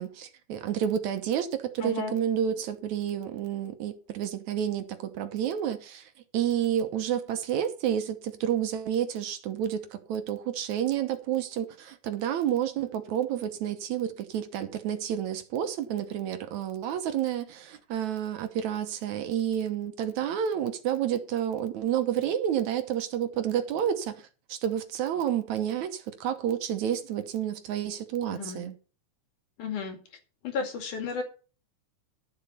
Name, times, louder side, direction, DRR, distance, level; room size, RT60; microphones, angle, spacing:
voice 1, 0.0-28.8, right 9 dB, 70° right, 2.2 m, -30 dB
voice 2, 1.8-2.2 28.3-28.7 29.6-30.0 30.4-31.2, left 4 dB, 70° left, 3.7 m, -33 dB
12.0 x 7.4 x 5.7 m
omnidirectional pair, 3.7 m